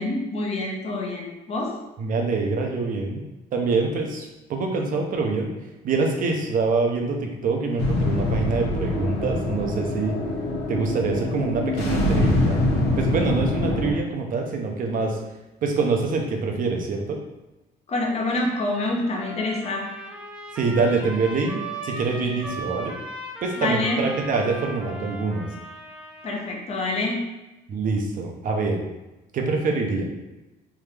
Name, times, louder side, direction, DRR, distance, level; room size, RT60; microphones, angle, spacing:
voice 1, 0.0-1.7 17.9-19.8 23.6-24.0 26.2-27.2, left 2 dB, 40° left, -1 dB, 0.9 m, -26 dB
voice 2, 2.0-3.2 3.5-5.5 5.8-10.2 10.7-12.6 13.0-15.2 15.6-17.2 20.5-22.9 23.4-25.5 27.7-28.8 29.3-30.0, right 4 dB, 55° right, 2 dB, 0.7 m, -25 dB
sound 1, 7.8-13.9, left 1 dB, 80° left, 1.0 m, -24 dB
Trumpet, 18.6-26.5, right 1 dB, 5° right, 0.6 m, -38 dB
3.5 x 2.7 x 3.3 m, 1.0 s
cardioid pair, 110°, 17 cm